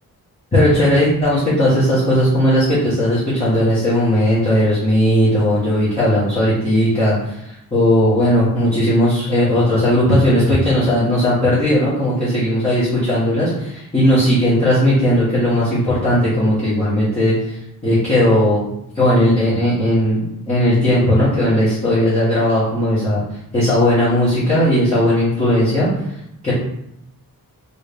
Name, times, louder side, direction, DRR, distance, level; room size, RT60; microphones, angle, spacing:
voice 1, 0.5-18.7 18.9-23.2 23.5-25.9 26.4-26.5, equal, 20° left, -12 dB, 1.2 m, -17 dB
3.2 x 2.7 x 3.4 m, 0.77 s
wide cardioid pair, 160°, 37 cm